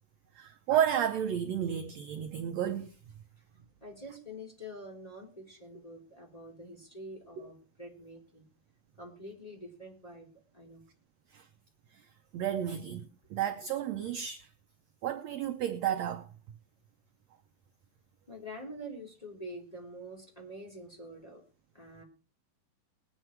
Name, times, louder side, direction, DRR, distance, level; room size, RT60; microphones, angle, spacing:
voice 1, 0.3-3.0 7.4-7.5 11.3-11.5 11.9-12.1 12.3-14.5 15.0-16.3, right 10 dB, 75° right, 1.6 m, -32 dB
voice 2, 3.8-8.5 9.0-10.9 18.3-21.4 21.7-22.0, equal, 10° left, 3.2 m, -46 dB
19.5 x 9.7 x 4.6 m
omnidirectional pair, 4.0 m